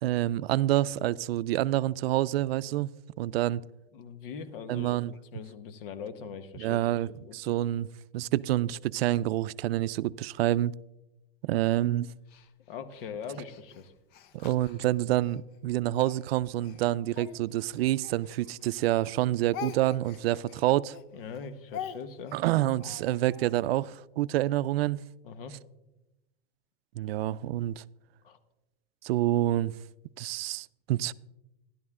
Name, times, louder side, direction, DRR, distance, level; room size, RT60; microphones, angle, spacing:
voice 1, 0.0-2.9 3.2-3.6 4.7-5.1 6.6-7.9 8.1-10.7 11.4-12.1 14.3-21.0 22.3-25.0 27.0-27.8 29.0-29.7 30.2-31.1, right 14 dB, 80° right, 0.4 m, -27 dB
voice 2, 3.9-5.0 5.3-6.8 7.2-7.3 12.7-13.9 21.1-22.4 25.2-25.6 28.2-28.4, left 6 dB, 65° left, 1.3 m, -41 dB
Speech, 12.3-15.4 16.0-18.8 19.1-23.5, left 9 dB, 35° left, 0.6 m, -45 dB
13.0 x 11.5 x 3.6 m
supercardioid pair, 150°, 30 cm